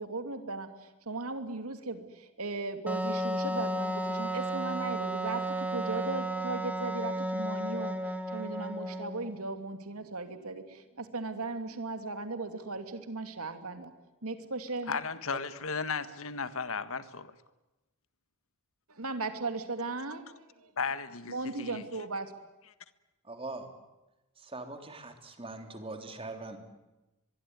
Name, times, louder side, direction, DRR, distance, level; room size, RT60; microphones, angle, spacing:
voice 1, 0.0-8.0 8.3-13.9 14.2-15.0 18.9-20.7 21.3-22.3, right 3 dB, 70° right, 8 dB, 2.8 m, -37 dB
Wind instrument woodwind instrument, 2.9-9.3, right 1 dB, 5° right, 2.7 m, -33 dB
voice 2, 14.9-17.3 20.8-21.8, left 5 dB, 65° left, 12 dB, 1.6 m, -35 dB
voice 3, 23.3-23.6 24.5-26.6, right 2 dB, 25° right, 6 dB, 3.3 m, -41 dB
24.0 x 22.5 x 9.6 m, 1.0 s
head